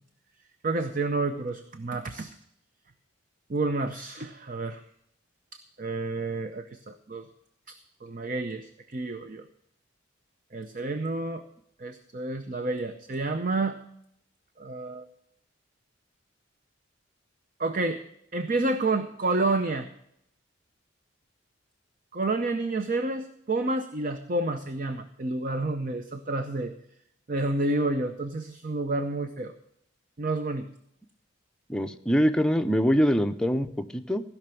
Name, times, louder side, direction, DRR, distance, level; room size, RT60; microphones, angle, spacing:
voice 1, 0.6-2.3 3.5-4.8 5.8-7.3 8.0-9.4 10.5-11.4 11.8-13.8 14.6-15.1 17.6-18.0 18.3-19.9 22.1-26.7 27.3-29.5 30.2-30.7, right 2 dB, 40° right, 8 dB, 0.6 m, -29 dB
voice 2, 31.7-34.2, equal, 5° left, 7 dB, 0.6 m, -24 dB
16.0 x 5.9 x 6.9 m, 0.74 s
head